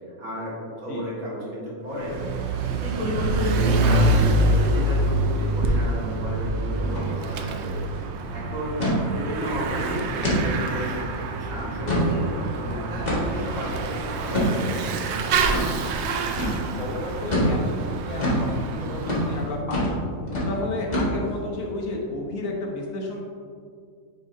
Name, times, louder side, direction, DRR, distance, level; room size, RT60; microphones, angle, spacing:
voice 1, 0.2-2.2 2.5-7.7 8.3-15.1, equal, 85° right, -7 dB, 2.3 m, -32 dB
Bicycle / Mechanisms, 1.9-19.5, right 2 dB, 65° right, 0.7 m, -26 dB
sound 1, 6.8-7.1 7.4-7.5 7.8-8.1 8.8-9.0 9.5-9.6 10.2-10.4 10.9-11.0 11.6-12.1 13.1-13.4 14.3-14.5 15.5-15.7 16.4-16.6 17.3-17.5 18.2-18.4 19.0-19.3 19.7-20.0 20.3-20.5 20.9-21.4, equal, 30° left, 1.7 m, -24 dB
voice 2, 16.8-20.0 20.5-23.2, left 2 dB, 75° left, 0 dB, 1.4 m, -32 dB
8.9 x 4.9 x 2.7 m, 2.2 s
omnidirectional pair, 1.4 m